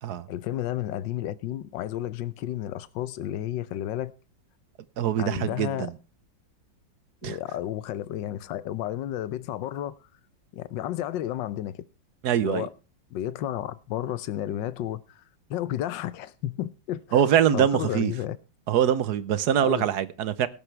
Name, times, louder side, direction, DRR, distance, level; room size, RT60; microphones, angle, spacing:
voice 1, 0.3-4.1 5.2-5.9 7.2-10.0 10.5-11.9 12.4-12.7 13.1-15.2 15.5-17.2 17.5-18.4 19.6-19.9, left 12 dB, 80° left, 1.5 m, -32 dB
voice 2, 5.0-5.9 7.2-7.4 12.2-12.7 17.1-18.1 18.7-20.5, right 9 dB, 65° right, 1.3 m, -23 dB
18.5 x 10.5 x 3.4 m
omnidirectional pair, 2.0 m